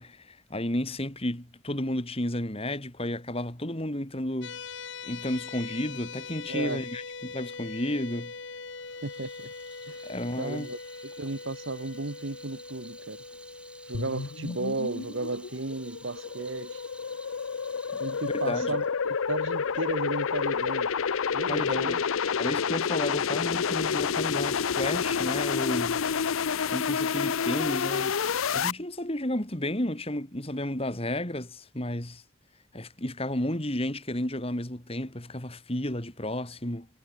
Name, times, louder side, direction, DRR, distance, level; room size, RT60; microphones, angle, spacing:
voice 1, 0.0-4.6 5.0-8.3 10.0-10.7 17.9-18.0 18.3-18.8 21.5-22.0 22.4-26.0 26.7-32.2 32.7-36.9, left 1 dB, 30° left, 2.9 m, -32 dB
sound 1, 4.4-15.6, left 4 dB, 60° left, 1.8 m, -42 dB
voice 2, 6.5-6.8 9.0-9.5 9.9-10.0 10.4-13.2 13.9-16.8 18.0-20.9 21.3-22.0, right 3 dB, 70° right, 1.3 m, -34 dB
Water tap faucet / Sink (filling or washing), 8.6-19.9, right 1 dB, 5° right, 3.5 m, -52 dB
sound 2, 13.9-28.7, left 6 dB, 80° left, 0.6 m, -29 dB
head